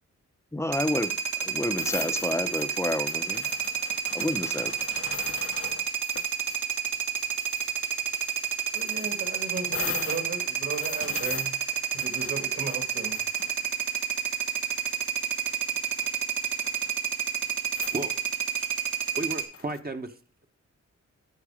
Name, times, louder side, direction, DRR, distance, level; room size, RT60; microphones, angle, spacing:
voice 1, 0.5-3.5 4.1-4.7, left 1 dB, 10° left, 0.7 m, -30 dB
sound 1, 0.7-19.4, right 8 dB, 75° right, 1.4 m, -30 dB
sound 2, 1.8-6.6 6.9-7.7 8.2-13.9 14.9-15.0 15.4-16.1 16.4-16.9 17.5-17.6 17.7-18.1 19.1-19.8, left 6 dB, 50° left, 0.7 m, -40 dB
voice 2, 8.7-11.5 11.9-13.2, right 3 dB, 55° right, 2.4 m, -36 dB
voice 3, 19.1-20.5, right 2 dB, 30° right, 1.0 m, -34 dB
13.5 x 4.8 x 5.0 m
cardioid pair, 70°, 30 cm